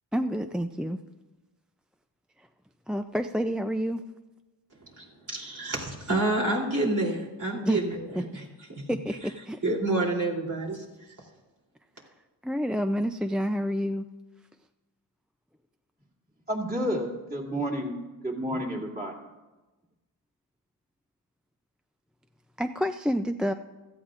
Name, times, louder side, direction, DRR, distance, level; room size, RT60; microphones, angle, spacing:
voice 1, 0.1-1.0 2.4-2.5 2.9-4.0 7.6-7.8 8.9-9.6 12.0-12.1 12.4-14.1 22.6-23.5, equal, ahead, 7 dB, 0.4 m, -28 dB
voice 2, 5.0-7.9 8.3-8.4 8.7-8.8 9.6-10.8, right 2 dB, 45° right, -2 dB, 3.4 m, -28 dB
voice 3, 16.5-18.0 18.2-19.2, equal, 20° right, -3 dB, 2.8 m, -30 dB
17.0 x 14.0 x 2.5 m, 1.1 s
wide cardioid pair, 80°, 42 cm